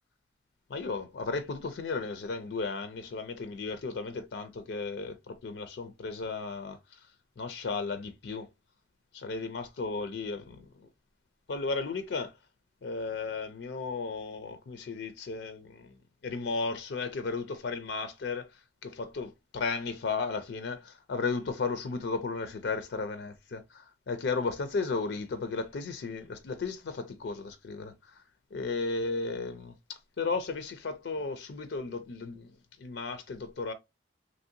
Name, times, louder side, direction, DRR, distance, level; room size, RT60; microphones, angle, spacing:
voice 1, 0.7-7.0 7.4-8.5 9.1-10.9 11.5-12.3 12.8-15.9 16.2-28.1 28.5-29.7 30.2-33.7, left 4 dB, 75° left, 0.4 m, -35 dB
3.0 x 2.6 x 2.6 m
head